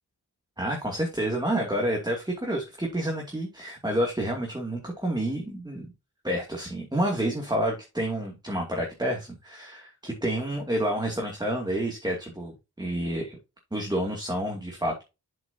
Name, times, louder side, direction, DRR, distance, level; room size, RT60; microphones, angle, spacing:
voice 1, 0.6-5.9 6.2-13.4 13.7-15.0, right 1 dB, 10° right, 2.4 m, -29 dB
7.7 x 6.9 x 2.8 m
wide cardioid pair, 115°, 38 cm